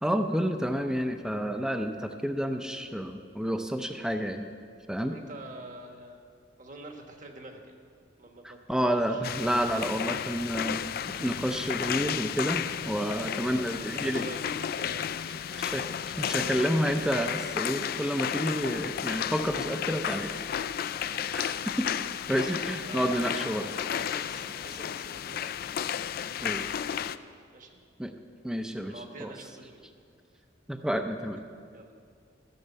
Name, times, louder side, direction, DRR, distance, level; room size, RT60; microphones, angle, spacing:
voice 1, 0.0-4.5 4.9-5.2 8.4-10.8 11.1-14.3 15.6-15.8 16.2-20.3 21.3-21.9 22.3-23.7 26.4-26.6 28.0-28.1 28.4-29.3 30.7-31.4, equal, 5° right, 6 dB, 0.5 m, -30 dB
voice 2, 5.0-6.2 6.6-7.7 8.2-9.2 13.1-16.4 20.5-20.9 22.0-22.1 22.8-23.3 23.6-25.6 26.3-26.8 27.5-27.8 28.9-29.9 31.7-31.9, right 2 dB, 45° right, 3 dB, 1.3 m, -47 dB
sound 1, 9.2-27.2, left 9 dB, 50° left, 0.3 m, -33 dB
14.5 x 6.5 x 8.1 m, 2.2 s
head